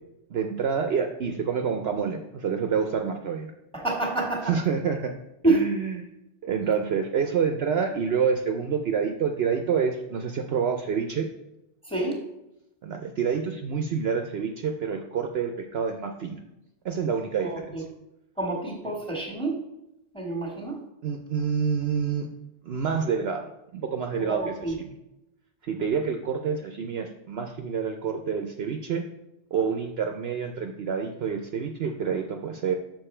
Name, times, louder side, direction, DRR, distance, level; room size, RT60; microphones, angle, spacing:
voice 1, 0.3-3.5 4.4-5.1 5.4-5.9 6.4-11.3 12.8-16.4 16.8-17.8 21.0-22.3 22.7-24.9 25.6-29.0 29.5-32.7, right 6 dB, 60° right, 5 dB, 0.8 m, -28 dB
voice 2, 3.7-4.5 5.4-5.6 11.8-12.2 17.4-17.8 18.4-19.6 20.1-20.8 24.2-24.7, right 2 dB, 5° left, -1 dB, 1.6 m, -27 dB
6.8 x 6.0 x 4.3 m, 0.90 s
omnidirectional pair, 1.3 m